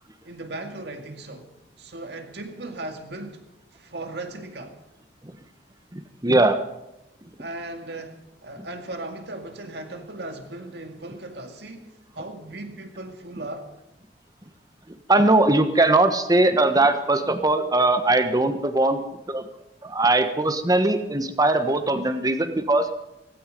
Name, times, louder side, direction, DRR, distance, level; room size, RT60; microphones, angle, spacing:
voice 1, 0.2-1.5 1.8-3.4 3.7-4.8 7.4-13.7, right 2 dB, 70° right, 5 dB, 2.1 m, -37 dB
voice 2, 5.9-6.6 14.9-19.5 19.8-22.9, right 2 dB, 20° right, 9 dB, 1.2 m, -20 dB
16.5 x 16.0 x 5.3 m, 0.91 s
head